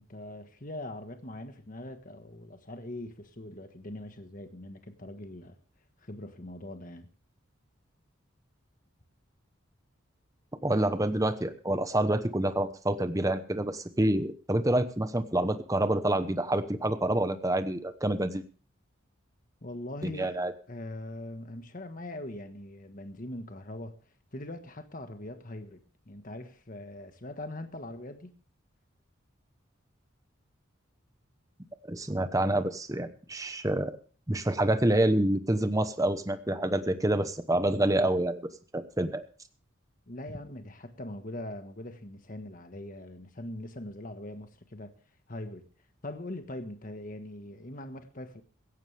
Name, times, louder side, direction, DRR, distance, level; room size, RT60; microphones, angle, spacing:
voice 1, 0.0-5.6 6.0-7.1 19.6-20.4 20.7-24.0 24.3-28.3 40.1-44.9 45.3-45.7 46.0-48.4, left 1 dB, 40° left, 1.4 m, -41 dB
voice 2, 10.6-18.4 20.0-20.5 31.9-33.9 34.3-38.4 38.7-39.2, right 1 dB, 15° right, 0.9 m, -27 dB
17.0 x 15.0 x 3.4 m
head